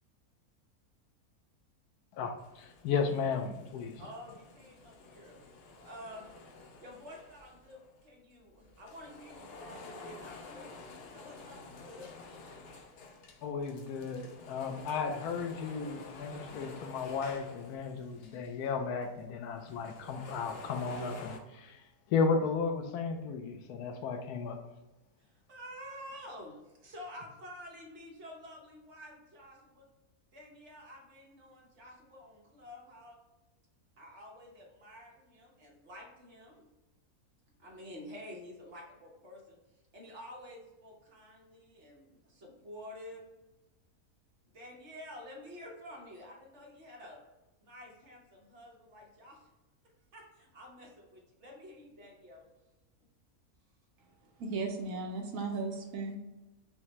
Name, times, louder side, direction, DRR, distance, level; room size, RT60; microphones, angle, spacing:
voice 1, 2.1-4.0 13.4-24.6, left 5 dB, 85° left, 1.1 m, -34 dB
sound 1, 2.4-8.0 8.5-18.7 19.0-19.1 19.5-21.4, left 3 dB, 65° left, 0.6 m, -50 dB
voice 2, 4.0-5.4 5.7-6.3 6.8-10.7 11.1-12.8 25.2-29.9 30.3-33.2 34.0-36.7 37.6-43.3 44.4-47.2 47.6-49.5 50.1-52.5, left 1 dB, 50° right, 1.2 m, -50 dB
voice 3, 54.4-56.2, right 3 dB, 70° right, 0.9 m, -36 dB
5.7 x 2.1 x 3.0 m
omnidirectional pair, 1.6 m